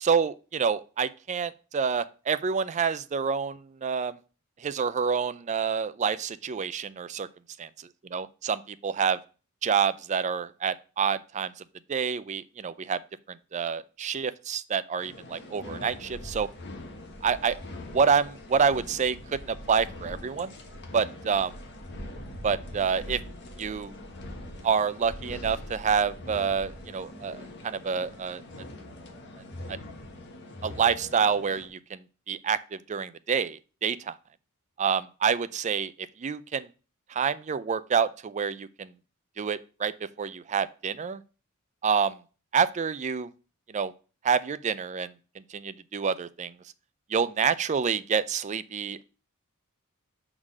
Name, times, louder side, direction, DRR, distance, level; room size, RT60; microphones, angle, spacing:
voice 1, 0.0-4.2 4.6-7.3 7.6-7.7 8.1-9.2 9.6-11.5 11.9-13.0 13.5-16.5 17.2-17.6 17.9-20.5 20.9-21.5 22.4-23.2 23.6-23.9 24.6-28.4 29.7-29.8 30.6-32.0 32.3-34.1 34.8-35.9 36.2-36.7 37.1-38.9 39.4-41.2 41.8-42.2 42.5-43.3 43.7-43.9 44.2-45.1 45.5-46.5 47.1-49.0, right 6 dB, 35° right, 0.4 m, -27 dB
sound 1, 15.0-31.7, left 1 dB, 55° left, 1.4 m, -42 dB
6.4 x 3.7 x 6.2 m
head